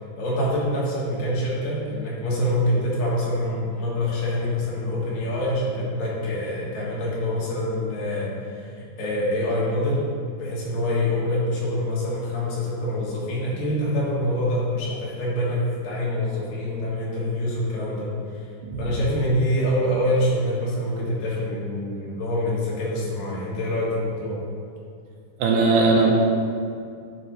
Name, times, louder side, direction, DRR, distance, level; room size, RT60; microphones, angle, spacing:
voice 1, 0.2-8.7 9.0-10.1 10.4-18.4 18.8-24.4, left 1 dB, 75° left, -6 dB, 3.1 m, -25 dB
voice 2, 25.4-26.1, right 3 dB, 80° right, -1 dB, 2.4 m, -19 dB
9.1 x 5.8 x 3.1 m, 2.3 s
omnidirectional pair, 4.0 m